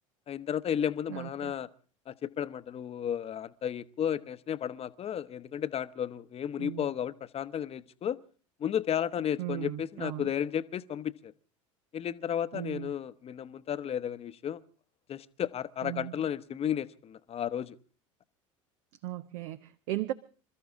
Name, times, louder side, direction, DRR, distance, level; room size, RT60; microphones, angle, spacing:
voice 1, 0.3-1.7 2.1-8.2 8.6-11.3 11.9-14.6 15.1-17.7, left 9 dB, 35° left, 0.9 m, -33 dB
voice 2, 1.1-1.6 6.6-6.9 9.4-10.3 12.5-12.9 15.8-16.2 19.0-20.1, right 15 dB, 65° right, 0.7 m, -37 dB
27.0 x 13.5 x 3.6 m
hypercardioid pair, 75°, 17 cm